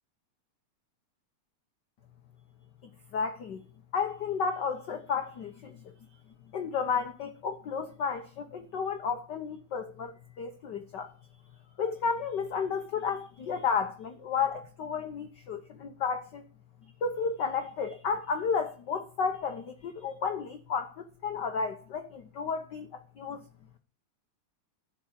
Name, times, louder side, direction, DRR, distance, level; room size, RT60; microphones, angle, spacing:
voice 1, 3.1-3.6 3.9-5.9 6.5-11.1 11.8-16.4 17.0-23.4, left 5 dB, 55° left, 6 dB, 1.2 m, -32 dB
12.5 x 7.2 x 8.6 m, 0.38 s
omnidirectional pair, 3.3 m